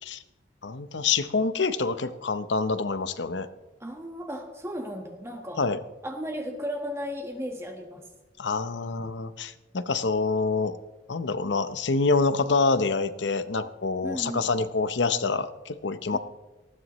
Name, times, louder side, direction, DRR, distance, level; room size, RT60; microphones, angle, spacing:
voice 1, 0.6-3.5 5.6-5.8 8.4-10.8 11.1-16.2, left 4 dB, 80° left, 12 dB, 0.8 m, -26 dB
voice 2, 3.8-5.6 6.0-8.0 14.0-14.5 16.1-16.2, equal, 15° right, 3 dB, 1.4 m, -35 dB
19.0 x 15.5 x 3.1 m, 1.1 s
head